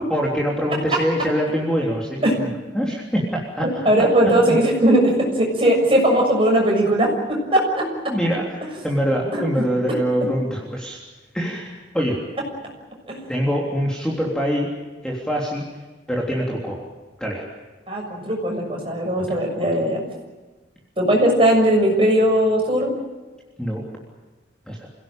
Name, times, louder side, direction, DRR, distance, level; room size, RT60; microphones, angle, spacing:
voice 1, 0.1-2.5 2.7-3.9 4.3-4.6 7.8-11.0 11.3-12.2 13.3-14.7 15.0-15.6 16.1-16.8 17.2-17.5 19.2-19.7 23.6-23.8 24.7-24.9, equal, 5° left, -2 dB, 3.4 m, -24 dB
voice 2, 3.6-8.1 9.3-9.4 13.1-13.2 17.9-20.0 21.0-22.9, right 1 dB, 30° right, 1 dB, 6.8 m, -19 dB
28.0 x 17.5 x 9.0 m, 1.2 s
head